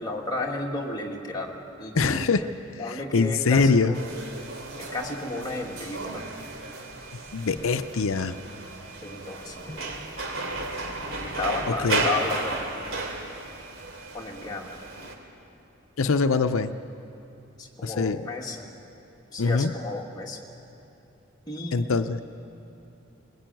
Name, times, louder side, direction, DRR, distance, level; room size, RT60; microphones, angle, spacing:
voice 1, 0.0-2.5 2.8-4.1 4.8-6.3 9.0-10.0 10.4-10.6 11.2-13.2 14.1-14.8 17.6-18.7 19.3-20.4 21.5-21.9, left 2 dB, 20° left, -1 dB, 2.3 m, -33 dB
voice 2, 1.9-2.4 2.9-4.0 7.3-8.4 11.8-12.0 16.0-16.8 17.8-18.2 19.4-19.7 21.7-22.2, left 4 dB, 85° left, 9 dB, 0.7 m, -23 dB
sound 1, 3.9-15.1, right 2 dB, 80° right, 3.1 m, -34 dB
22.0 x 21.5 x 9.2 m, 2.8 s
head